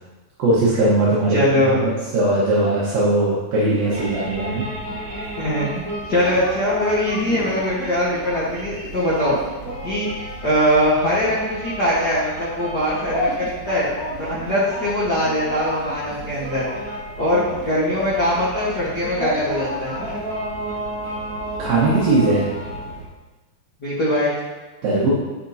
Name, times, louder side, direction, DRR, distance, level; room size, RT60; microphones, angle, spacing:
voice 1, 0.4-4.6 21.6-22.5 24.8-25.1, right 2 dB, 65° right, -8 dB, 3.0 m, -19 dB
voice 2, 1.3-1.8 5.4-5.8 6.1-9.4 9.8-10.1 10.4-13.9 14.2-16.7 17.2-19.9 23.8-24.3, left 1 dB, 75° left, -9 dB, 0.9 m, -21 dB
sound 1, 3.9-23.0, equal, 45° right, 3.1 m, -31 dB
11.0 x 7.5 x 2.9 m, 1.2 s
omnidirectional pair, 4.5 m